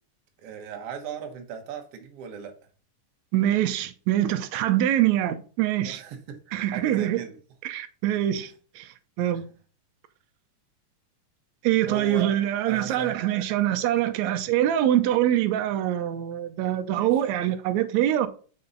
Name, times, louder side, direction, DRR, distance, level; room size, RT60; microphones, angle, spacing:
voice 1, 0.4-2.5 5.8-7.4 8.4-8.5 11.9-12.4 12.7-13.2 16.9-17.2, right 7 dB, 55° right, 2.0 m, -38 dB
voice 2, 3.3-6.0 6.5-7.2 7.6-9.5 11.6-18.3, right 12 dB, 75° right, 1.8 m, -24 dB
6.8 x 5.6 x 3.8 m
omnidirectional pair, 3.7 m